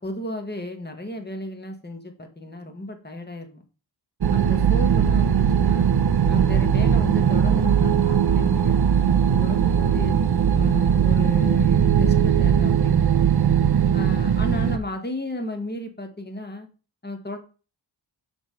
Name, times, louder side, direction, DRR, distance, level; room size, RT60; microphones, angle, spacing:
voice 1, 0.0-3.6 4.3-5.9 6.3-10.2 10.5-13.3 13.9-16.7 17.0-17.4, left 1 dB, 20° left, 5 dB, 1.3 m, -34 dB
sound 1, 4.2-14.8, right 8 dB, 55° right, 0.6 m, -19 dB
5.8 x 3.4 x 5.6 m, 0.35 s
wide cardioid pair, 90°, 47 cm